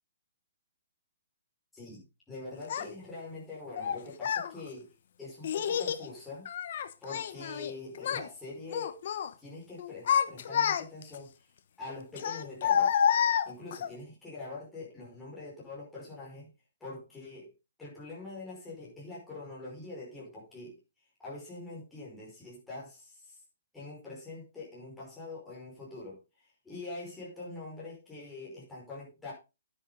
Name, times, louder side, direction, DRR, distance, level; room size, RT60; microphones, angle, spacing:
voice 1, 1.7-4.9 5.2-6.5 7.0-8.9 9.4-11.3 11.8-13.0 13.4-16.5 16.8-17.5 17.8-20.8 21.2-23.4 23.7-26.2 26.6-29.3, left 3 dB, 5° left, 5.4 m, -44 dB
Child speech kid speaking, 2.7-2.8 3.8-4.5 5.4-6.0 6.5-7.7 8.0-8.3 8.7-9.3 9.8-11.2 12.2-13.9, left 8 dB, 40° left, 1.1 m, -29 dB
10.5 x 10.5 x 4.0 m
hypercardioid pair, 175°, 0 cm